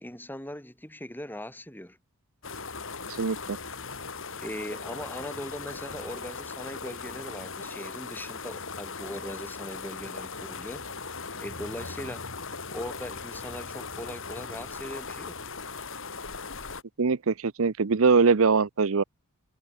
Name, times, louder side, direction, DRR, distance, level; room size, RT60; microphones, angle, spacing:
voice 1, 0.0-2.0 4.4-11.1 11.4-12.2 12.7-15.4, left 1 dB, 10° left, 7.5 m, -40 dB
sound 1, 2.4-16.8, left 4 dB, 60° left, 4.5 m, -39 dB
voice 2, 3.2-3.6 17.0-19.0, right 4 dB, 65° right, 0.7 m, -22 dB
head